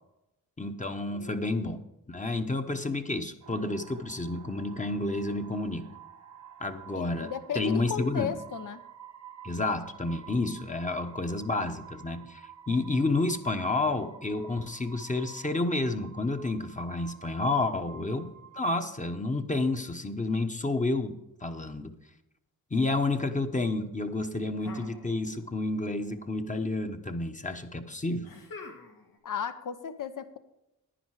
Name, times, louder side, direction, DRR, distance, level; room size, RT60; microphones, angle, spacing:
voice 1, 0.6-1.8 2.1-5.9 6.6-8.3 9.4-21.2 21.4-21.9 22.7-28.3, left 2 dB, 20° left, 6 dB, 1.0 m, -30 dB
voice 2, 1.1-1.5 6.9-8.8 29.2-30.4, left 8 dB, 65° left, 11 dB, 0.9 m, -35 dB
sound 1, 3.4-20.0, right 8 dB, 55° right, 0.9 m, -50 dB
sound 2, 24.6-25.6 25.8-26.6 28.2-29.2, left 3 dB, 85° left, 2.3 m, -47 dB
10.5 x 10.0 x 4.8 m, 0.91 s
cardioid pair, 80°, 34 cm